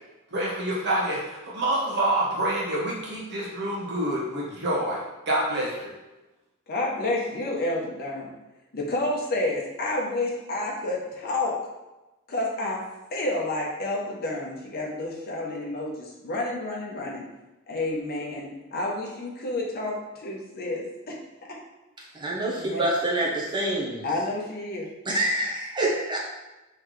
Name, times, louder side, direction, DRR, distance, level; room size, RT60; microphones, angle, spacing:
voice 1, 0.3-5.9, right 1 dB, 55° right, -5 dB, 1.1 m, -27 dB
voice 2, 6.7-8.3 8.7-11.6 12.3-12.8 13.1-17.2 17.7-21.2 22.5-22.8 24.0-24.9, left 2 dB, 45° left, -2 dB, 0.8 m, -30 dB
voice 3, 22.1-24.0 25.1-26.2, right 1 dB, 20° right, -4 dB, 0.9 m, -26 dB
3.9 x 3.3 x 3.2 m, 1.0 s
head